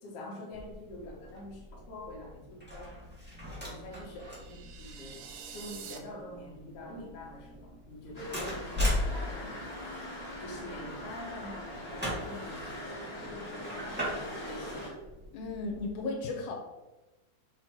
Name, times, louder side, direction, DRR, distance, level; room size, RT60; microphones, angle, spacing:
voice 1, 0.0-3.0 3.6-5.2 5.5-9.6 10.4-14.2 14.5-14.9, left 1 dB, 55° left, -3 dB, 2.0 m, -45 dB
sound 1, 0.5-16.0, left 1 dB, 5° right, 1.0 m, -39 dB
sound 2, 4.0-6.0, right 7 dB, 75° right, 1.5 m, -47 dB
sound 3, 8.1-14.9, left 1 dB, 15° left, 1.3 m, -42 dB
voice 2, 15.3-16.5, left 3 dB, 80° left, 1 dB, 2.3 m, -35 dB
7.0 x 3.1 x 4.4 m, 1.1 s
omnidirectional pair, 3.5 m